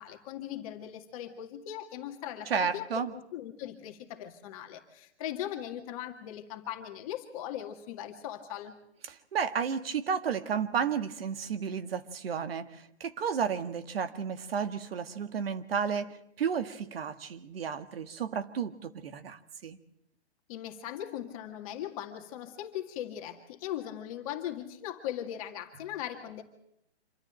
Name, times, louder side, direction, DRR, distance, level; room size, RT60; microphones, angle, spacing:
voice 1, 0.0-8.8 20.5-26.4, left 11 dB, 30° left, 4 dB, 2.0 m, -39 dB
voice 2, 2.5-3.1 9.1-19.8, right 7 dB, 60° right, 10 dB, 1.9 m, -32 dB
26.5 x 14.0 x 8.9 m, 0.76 s
hypercardioid pair, 150°, 34 cm